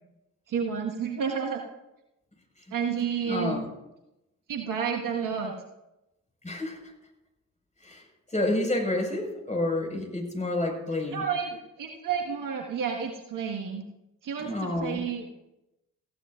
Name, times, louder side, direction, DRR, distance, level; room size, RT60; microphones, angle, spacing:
voice 1, 0.5-1.6 2.7-3.6 4.5-5.5 11.1-13.8 14.2-15.3, right 6 dB, 50° right, 2 dB, 1.7 m, -30 dB
voice 2, 3.3-3.7 6.4-6.9 7.8-11.3 14.4-15.0, left 1 dB, 15° left, 1 dB, 5.4 m, -29 dB
19.0 x 15.0 x 2.5 m, 0.92 s
figure-of-eight pair, 40°, 41 cm